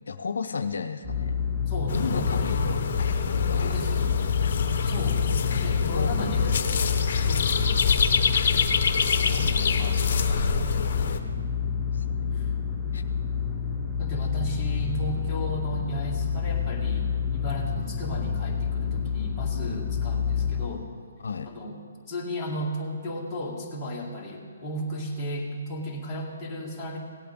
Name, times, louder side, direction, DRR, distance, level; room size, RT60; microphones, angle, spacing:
voice 1, 0.1-1.4 1.9-3.7 4.4-4.5 5.9-6.6 11.9-12.2 12.9-13.0 21.2-21.5, left 5 dB, 75° left, 7 dB, 0.6 m, -33 dB
sound 1, 1.0-20.7, left 7 dB, 5° right, 1.5 m, -28 dB
voice 2, 1.7-2.7 3.6-4.3 4.8-5.2 5.5-6.6 6.8-7.8 9.0-11.0 12.3-12.5 14.0-17.1 17.3-20.9 21.4-21.8 22.1-27.0, equal, 10° left, -6 dB, 2.1 m, -35 dB
sound 2, 1.9-11.2, left 5 dB, 50° left, 0.9 m, -26 dB
sound 3, 12.3-12.7 13.0-13.1, right 1 dB, 55° right, 1.1 m, -48 dB
17.5 x 8.5 x 3.6 m, 2.1 s
hypercardioid pair, 150°, 0 cm